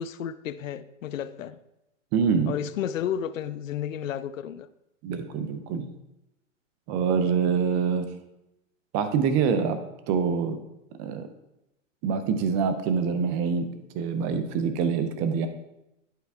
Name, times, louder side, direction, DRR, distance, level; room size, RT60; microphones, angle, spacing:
voice 1, 0.0-1.6 2.5-4.7, left 9 dB, 90° left, 15 dB, 0.6 m, -32 dB
voice 2, 2.1-2.5 5.0-5.9 6.9-8.1 8.9-9.8 10.1-10.6 11.0-11.3 12.0-13.7 13.9-15.5, right 6 dB, 20° right, 9 dB, 0.5 m, -25 dB
11.0 x 4.6 x 3.4 m, 0.89 s
hypercardioid pair, 140°, 39 cm